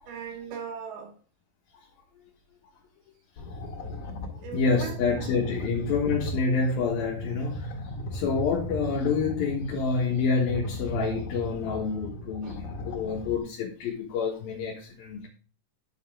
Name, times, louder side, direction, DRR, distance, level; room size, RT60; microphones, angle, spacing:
voice 1, 0.1-1.1 4.4-5.3 12.4-12.6, right 7 dB, 90° right, 4.2 m, -39 dB
sound 1, 3.4-13.4, equal, 55° left, 3.3 m, -37 dB
voice 2, 4.5-15.3, left 5 dB, 75° left, 3.3 m, -28 dB
9.9 x 7.1 x 3.7 m
omnidirectional pair, 4.4 m